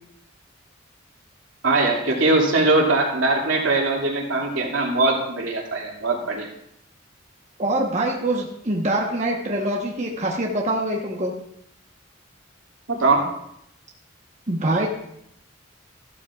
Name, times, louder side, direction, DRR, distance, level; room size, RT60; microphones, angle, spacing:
voice 1, 1.6-6.5 12.9-13.2, right 2 dB, 75° right, -1 dB, 2.5 m, -21 dB
voice 2, 7.6-11.3 14.5-14.9, right 1 dB, 35° right, -1 dB, 1.2 m, -24 dB
14.5 x 12.5 x 2.5 m, 0.76 s
head